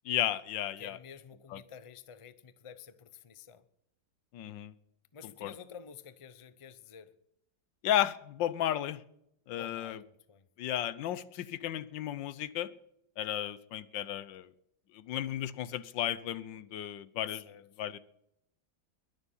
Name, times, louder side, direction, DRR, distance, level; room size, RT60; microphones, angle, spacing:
voice 1, 0.0-1.0 1.5-1.6 4.3-4.7 5.4-5.5 7.8-9.0 9.5-10.0 10.6-12.7 13.2-14.5 14.9-17.5 17.8-18.0, left 11 dB, 85° left, 1.5 m, -34 dB
voice 2, 0.8-3.6 5.1-7.1 9.5-10.5 17.3-17.7, left 7 dB, 55° left, 0.3 m, -50 dB
22.0 x 7.3 x 5.5 m
omnidirectional pair, 2.0 m